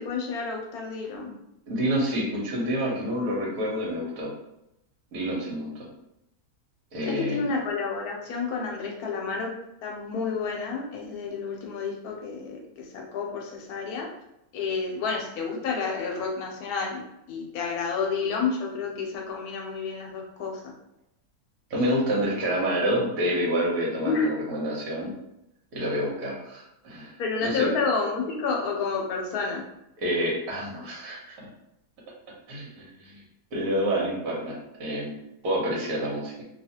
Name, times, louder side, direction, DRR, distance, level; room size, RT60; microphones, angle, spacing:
voice 1, 0.0-1.3 7.0-9.5 9.8-12.6 12.9-14.1 14.5-17.0 17.3-20.6 24.0-24.3 27.2-29.6, left 5 dB, 80° left, 0 dB, 1.1 m, -30 dB
voice 2, 1.7-4.3 5.1-5.7 6.9-7.5 21.7-25.1 25.7-27.2 27.4-27.7 30.0-31.4 32.5-33.2 33.5-36.4, equal, 70° right, -3 dB, 1.3 m, -28 dB
2.7 x 2.4 x 2.7 m, 0.84 s
omnidirectional pair, 1.6 m